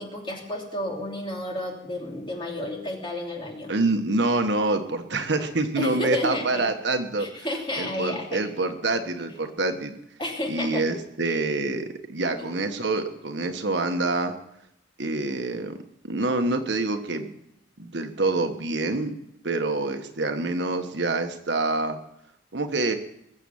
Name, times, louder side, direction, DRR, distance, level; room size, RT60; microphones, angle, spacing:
voice 1, 0.0-3.7 5.8-6.6 7.2-8.4 10.2-10.8 11.2-11.4 12.4-12.5, left 1 dB, 25° left, 0 dB, 3.0 m, -31 dB
voice 2, 3.7-7.3 7.8-9.9 10.5-14.3 15.0-15.8 16.0-17.4 17.8-19.1 19.4-22.0 22.5-23.0, right 2 dB, 65° right, 6 dB, 1.4 m, -26 dB
21.5 x 7.7 x 7.2 m, 0.79 s
head